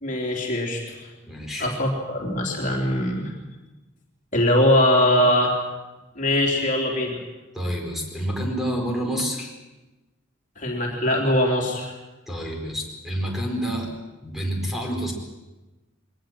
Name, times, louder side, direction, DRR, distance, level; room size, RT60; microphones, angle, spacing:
voice 1, 0.0-1.1 1.6-3.3 4.3-5.6 6.1-7.2 10.6-11.9, left 1 dB, 40° left, -1 dB, 3.4 m, -22 dB
voice 2, 1.2-1.7 7.5-9.5 12.3-13.9 14.2-15.1, equal, ahead, 0 dB, 4.5 m, -28 dB
22.0 x 19.0 x 7.6 m, 1.1 s
head